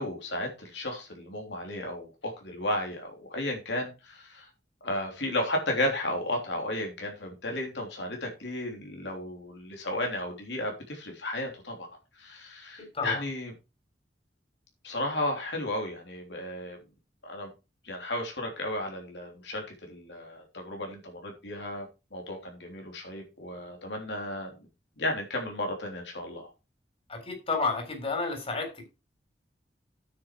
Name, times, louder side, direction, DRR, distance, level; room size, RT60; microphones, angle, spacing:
voice 1, 0.0-4.5 4.8-11.9 12.2-13.5 14.8-16.8 17.2-17.5 17.8-21.9 22.1-24.5 25.0-26.5, left 1 dB, 90° left, 1 dB, 3.4 m, -34 dB
voice 2, 12.8-13.2 27.1-28.8, left 3 dB, 35° left, 4 dB, 3.7 m, -31 dB
9.4 x 7.9 x 4.7 m, 0.29 s
head